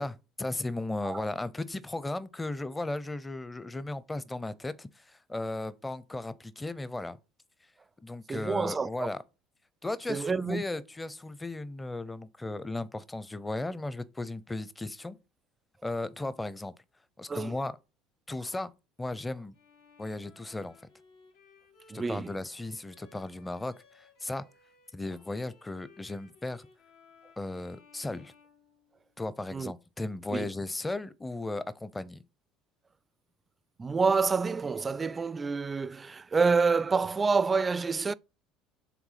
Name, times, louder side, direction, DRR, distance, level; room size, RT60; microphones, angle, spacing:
voice 1, 0.0-7.2 8.0-9.2 9.8-15.2 15.8-16.7 17.2-17.8 18.3-18.7 19.0-19.6 20.0-20.7 21.9-24.4 24.9-26.7 27.4-28.3 29.2-32.2, left 2 dB, 15° left, 0.6 m, -36 dB
voice 2, 8.3-9.1 10.1-10.6 17.3-17.6 21.9-22.3 29.5-29.7 30.3-30.5 33.8-38.1, right 4 dB, 25° right, 0.4 m, -28 dB
Bowed string instrument, 19.5-29.3, left 4 dB, 80° left, 1.3 m, -60 dB
5.9 x 3.7 x 5.7 m
hypercardioid pair, 70°, 0 cm